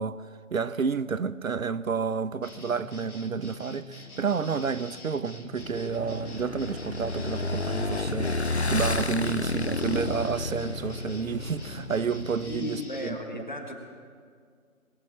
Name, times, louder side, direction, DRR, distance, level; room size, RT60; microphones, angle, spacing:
voice 1, 0.0-13.2, right 5 dB, 70° right, 0.5 m, -30 dB
sound 1, 2.4-13.1, left 1 dB, 75° left, 1.8 m, -45 dB
Motorcycle / Engine, 5.6-12.6, left 2 dB, 50° left, 0.5 m, -31 dB
voice 2, 12.5-13.7, left 1 dB, 30° left, 1.3 m, -35 dB
21.5 x 7.6 x 7.3 m
figure-of-eight pair, 170°, 44 cm